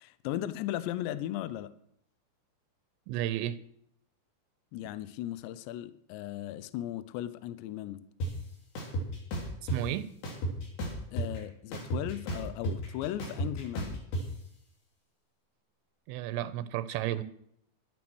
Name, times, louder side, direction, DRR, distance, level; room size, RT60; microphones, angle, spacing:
voice 1, 0.0-1.7 4.7-8.0 11.1-14.0, left 13 dB, 80° left, 2.7 m, -37 dB
voice 2, 3.1-3.6 9.7-10.1 16.1-17.2, right 13 dB, 80° right, 3.1 m, -32 dB
sound 1, 8.2-8.3 8.8-9.8 10.2-11.4 11.7-14.2, right 1 dB, 55° left, 5.0 m, -33 dB
12.5 x 12.0 x 6.2 m
omnidirectional pair, 5.8 m